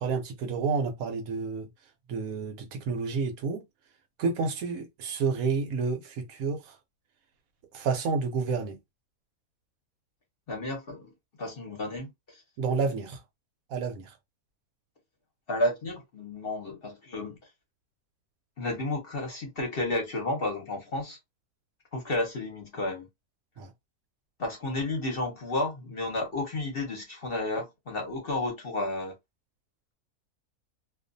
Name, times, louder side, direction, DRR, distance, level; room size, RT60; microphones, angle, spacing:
voice 1, 0.0-1.7 2.1-3.6 4.2-6.8 7.7-8.8 12.6-13.2 13.7-14.1 23.6-23.7, right 5 dB, 75° right, 1.0 m, -30 dB
voice 2, 10.5-11.1 11.4-12.4 15.5-17.4 18.6-21.2 21.9-23.1 24.4-29.1, left 2 dB, 45° left, 0.8 m, -32 dB
2.4 x 2.3 x 2.6 m
omnidirectional pair, 1.6 m